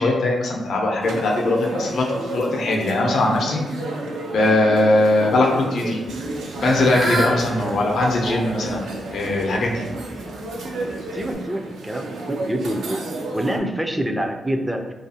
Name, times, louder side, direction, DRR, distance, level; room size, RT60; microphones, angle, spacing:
voice 1, 0.0-3.6 4.3-6.0 6.6-8.8 9.1-9.8, left 2 dB, 70° left, 0 dB, 0.5 m, -20 dB
sound 1, 1.0-13.6, right 2 dB, 85° right, 0.4 m, -31 dB
Fowl / Bird, 6.0-11.3, right 1 dB, 65° right, 0.8 m, -31 dB
voice 2, 11.1-13.1 13.3-14.9, right 1 dB, 10° right, 5 dB, 0.3 m, -26 dB
2.3 x 2.3 x 2.7 m, 1.0 s
cardioid pair, 75°, 0 cm